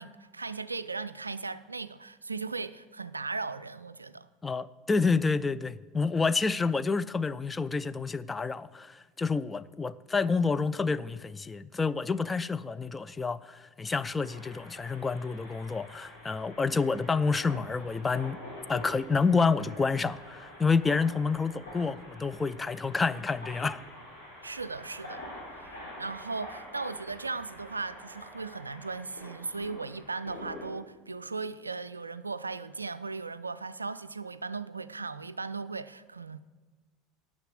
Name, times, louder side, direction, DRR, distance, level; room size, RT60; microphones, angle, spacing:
voice 1, 0.0-4.3 24.4-25.2 25.6-36.4, right 4 dB, 80° right, 0.3 m, -37 dB
voice 2, 4.4-18.4 18.7-23.8, left 4 dB, 15° left, 0.3 m, -29 dB
sound 1, 14.2-30.7, left 1 dB, 85° left, 4.2 m, -46 dB
9.6 x 6.5 x 7.6 m
figure-of-eight pair, 75°, 0 cm